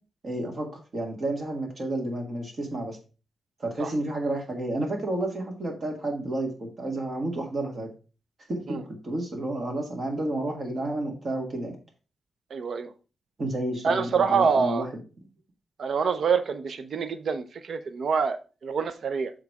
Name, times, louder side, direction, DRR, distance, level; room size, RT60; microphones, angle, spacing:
voice 1, 0.2-3.0 3.6-7.9 8.5-8.8 9.0-11.7 13.4-15.0, right 1 dB, 40° right, 2 dB, 1.8 m, -31 dB
voice 2, 12.5-12.9 13.8-14.8 15.8-19.3, right 6 dB, 60° right, 11 dB, 0.6 m, -26 dB
7.3 x 4.0 x 4.7 m, 0.34 s
wide cardioid pair, 155°, 0 cm